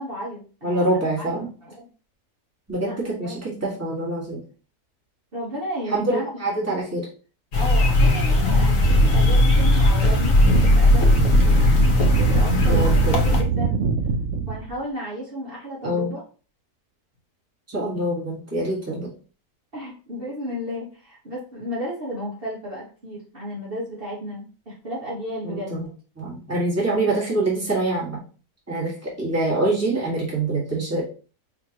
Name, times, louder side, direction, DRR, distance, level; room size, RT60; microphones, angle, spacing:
voice 1, 0.0-1.8 2.8-3.4 5.3-6.3 7.5-11.1 11.4-13.8 14.5-16.2 19.7-25.9, equal, 40° right, -7 dB, 1.5 m, -33 dB
voice 2, 0.6-1.5 2.7-4.4 5.9-7.1 12.7-13.2 15.8-16.1 17.7-19.1 25.4-25.9 26.2-28.2 28.7-31.0, right 2 dB, 10° right, -5 dB, 1.7 m, -25 dB
sound 1, 7.5-13.4, left 2 dB, 65° left, 1.2 m, -17 dB
sound 2, 8.7-14.7, right 5 dB, 65° right, 0.9 m, -24 dB
5.0 x 3.0 x 2.9 m, 0.37 s
omnidirectional pair, 1.6 m